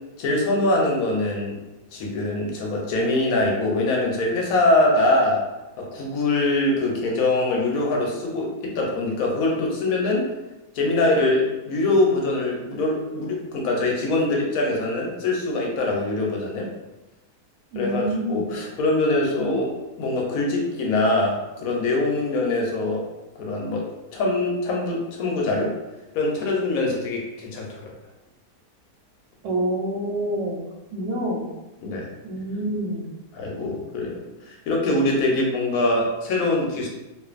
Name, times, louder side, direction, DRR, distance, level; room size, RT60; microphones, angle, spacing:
voice 1, 0.2-1.6 1.9-5.4 5.8-10.3 10.7-16.7 17.7-23.1 23.4-25.7 26.1-27.9 31.8-32.1 33.3-36.9, left 2 dB, 70° left, -1 dB, 0.9 m, -23 dB
voice 2, 17.7-18.4 29.4-30.6 30.9-31.5 32.2-33.1, right 1 dB, 85° right, -2 dB, 1.2 m, -27 dB
2.5 x 2.4 x 2.4 m, 1.0 s
omnidirectional pair, 1.8 m